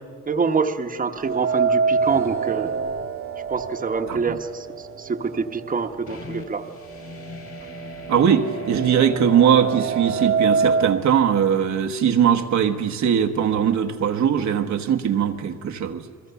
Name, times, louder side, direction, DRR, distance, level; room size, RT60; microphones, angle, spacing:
voice 1, 0.3-2.7 3.5-6.6, right 5 dB, 25° right, 6 dB, 1.2 m, -26 dB
sound 1, 1.2-5.3 5.6-5.7 6.7-6.8 7.2-11.0, right 5 dB, 45° right, 0.8 m, -25 dB
sound 2, 6.1-11.5, left 5 dB, 45° left, 4.2 m, -42 dB
voice 2, 8.1-16.0, right 8 dB, 65° right, 6 dB, 1.3 m, -20 dB
28.5 x 21.0 x 6.9 m, 2.3 s
cardioid pair, 90°, 30 cm